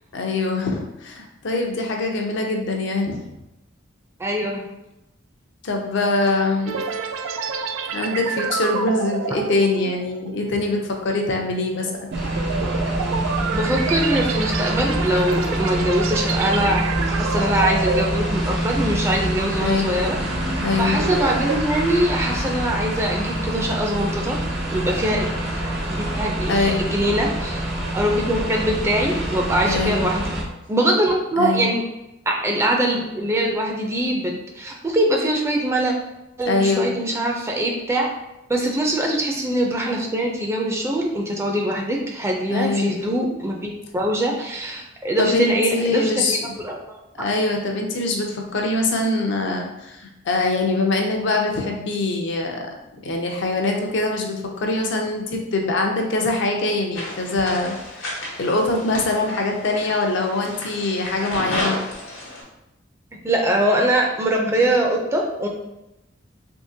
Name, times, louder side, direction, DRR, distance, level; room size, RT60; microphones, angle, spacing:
voice 1, 0.1-3.2 5.6-6.8 7.9-11.9 19.6-20.0 20.6-21.0 26.5-26.8 29.6-30.1 31.4-31.7 36.5-36.9 42.5-43.0 45.2-46.5 47.1-52.6 53.0-57.8 58.4-61.8, left 2 dB, 65° left, 1 dB, 0.6 m, -23 dB
voice 2, 4.2-4.7 13.5-20.2 20.8-24.4 24.7-25.3 25.9-27.6 27.9-30.3 30.7-31.8 32.3-35.9 36.4-38.1 38.5-46.7 63.2-65.5, right 1 dB, 15° right, 0 dB, 0.4 m, -22 dB
sound 1, 6.7-19.2 19.5-19.8 20.2-21.6, right 5 dB, 80° right, 0.3 m, -29 dB
sound 2, 12.1-30.4, right 1 dB, 60° right, 0.8 m, -26 dB
sound 3, 56.9-62.4, left 1 dB, 85° left, 1.0 m, -32 dB
3.6 x 2.8 x 2.7 m, 0.90 s
head